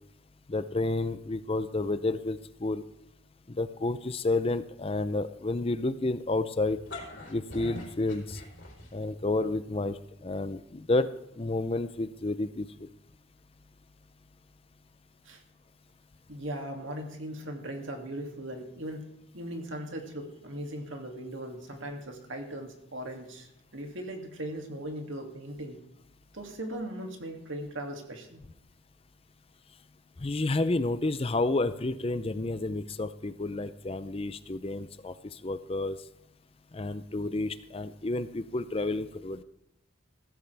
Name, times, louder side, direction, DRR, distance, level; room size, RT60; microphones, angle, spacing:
voice 1, 0.5-2.8 3.5-6.8 7.3-8.4 8.9-11.1 11.4-12.7 30.2-36.0 36.7-39.4, left 2 dB, 25° left, 12 dB, 0.5 m, -30 dB
sound 1, 6.6-9.2, left 2 dB, 60° left, 3.8 m, -43 dB
voice 2, 16.3-19.0 19.3-25.8 26.3-28.4, right 1 dB, 65° right, 3 dB, 2.5 m, -39 dB
16.0 x 14.5 x 3.4 m, 0.81 s
head